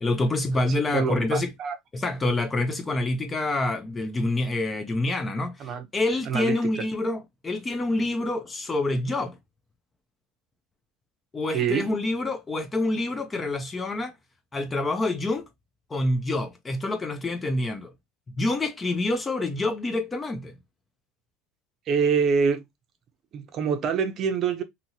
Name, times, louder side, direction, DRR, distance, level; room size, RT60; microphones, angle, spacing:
voice 1, 0.0-1.5 1.9-9.4 11.3-14.1 14.5-15.4 15.9-17.9 18.4-20.5, left 2 dB, 15° left, 0.4 m, -27 dB
voice 2, 0.9-1.8 5.6-5.9 6.3-6.8 11.5-11.9 21.9-22.6 23.3-24.6, right 6 dB, 35° right, 0.6 m, -25 dB
2.7 x 2.7 x 2.7 m
supercardioid pair, 145°, 0 cm